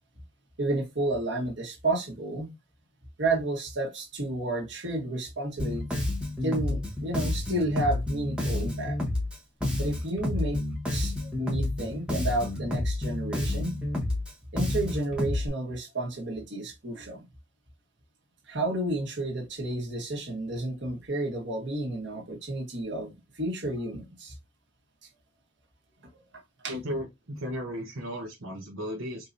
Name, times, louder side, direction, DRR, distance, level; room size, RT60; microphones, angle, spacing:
voice 1, 0.6-2.5 3.2-6.0 6.4-9.0 9.8-10.6 10.9-13.8 14.5-17.2 18.5-24.3 26.6-26.8, right 2 dB, 60° right, 1.6 m, -31 dB
Bass guitar, 5.6-15.5, left 1 dB, 5° right, 1.2 m, -30 dB
voice 2, 26.7-29.3, equal, 85° right, 1.0 m, -35 dB
4.7 x 2.9 x 2.6 m
head